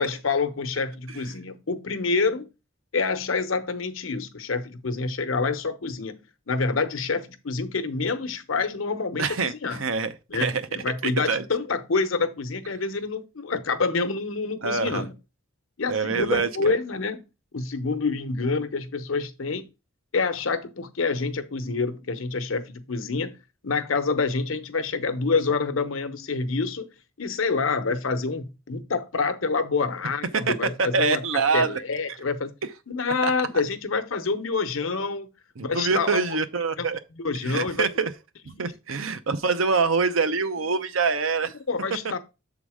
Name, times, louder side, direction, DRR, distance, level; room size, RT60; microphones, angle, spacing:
voice 1, 0.0-2.5 2.9-6.2 6.5-9.8 10.3-15.1 15.8-17.2 17.5-19.7 20.1-23.4 23.6-26.9 27.2-31.2 31.5-32.5 32.9-35.3 35.6-36.4 36.8-36.9 37.2-37.9 38.5-38.7 41.7-42.2, left 4 dB, 85° left, 0.9 m, -27 dB
voice 2, 9.2-10.6 11.0-11.4 14.6-15.1 15.9-16.5 30.5-30.6 30.8-31.8 33.2-33.3 35.6-37.0 37.4-38.1 38.5-41.5, right 4 dB, 85° right, 0.8 m, -25 dB
7.1 x 3.9 x 4.8 m
head